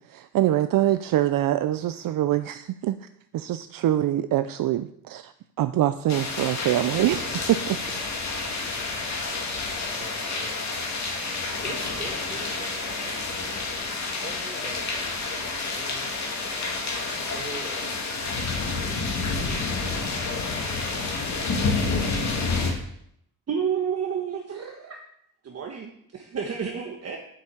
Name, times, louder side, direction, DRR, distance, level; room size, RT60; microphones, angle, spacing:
voice 1, 0.1-3.1 3.3-5.3 5.6-7.8, right 13 dB, 70° right, 11 dB, 0.6 m, -24 dB
sound 1, 6.1-22.7, left 3 dB, 50° left, 2.7 m, -29 dB
voice 2, 9.9-10.9 11.2-13.6 14.2-16.5 17.3-18.1 19.4-20.1, right 1 dB, 20° right, -2 dB, 4.7 m, -43 dB
voice 3, 23.5-25.0 25.4-27.2, right 7 dB, 45° right, 2 dB, 1.3 m, -30 dB
7.9 x 7.1 x 8.4 m, 0.70 s
cardioid pair, 125°, 35 cm